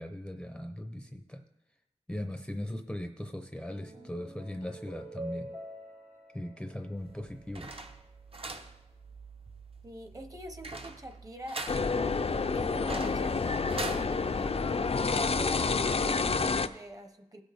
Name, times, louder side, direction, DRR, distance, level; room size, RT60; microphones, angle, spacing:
voice 1, 0.0-1.4 2.1-5.5 6.3-7.7, left 1 dB, 5° left, 6 dB, 0.6 m, -39 dB
sound 1, 3.4-8.0, right 1 dB, 75° right, 3.3 m, -46 dB
sound 2, 7.0-14.1, right 3 dB, 45° right, 0.9 m, -43 dB
voice 2, 9.8-11.6 12.5-14.6 15.0-17.4, right 1 dB, 25° right, 7 dB, 1.0 m, -44 dB
sound 3, 11.7-16.7, left 4 dB, 50° left, 0.5 m, -29 dB
17.0 x 6.2 x 3.5 m, 0.95 s
wide cardioid pair, 70°, 13 cm